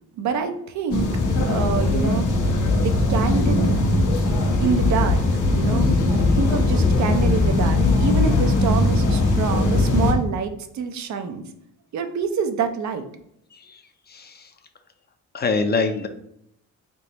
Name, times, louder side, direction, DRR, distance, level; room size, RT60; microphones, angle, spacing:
voice 1, 0.2-1.1 1.5-2.3 2.8-3.8 4.6-5.2 5.5-5.9 6.3-11.4 11.9-13.0, right 6 dB, 65° right, 7 dB, 0.6 m, -26 dB
sound 1, 0.9-10.1, left 2 dB, 75° left, 1.0 m, -20 dB
voice 2, 14.1-14.5 15.3-16.1, left 4 dB, 35° left, 7 dB, 0.5 m, -24 dB
3.5 x 2.9 x 4.0 m, 0.75 s
cardioid pair, 90°, 30 cm